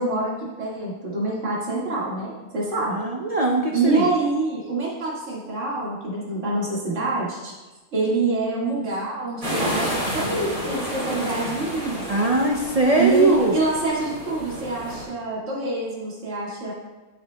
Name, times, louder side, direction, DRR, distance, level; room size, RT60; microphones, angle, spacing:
voice 1, 0.0-3.0 3.7-7.5 7.9-12.1 13.0-16.7, right 3 dB, 55° right, -5 dB, 2.1 m, -26 dB
voice 2, 2.9-4.1 12.1-13.6, right 2 dB, 75° right, 0 dB, 0.3 m, -20 dB
sound 1, 9.4-15.0, equal, 30° right, 2.9 m, -30 dB
11.5 x 6.8 x 2.2 m, 1.2 s
omnidirectional pair, 1.5 m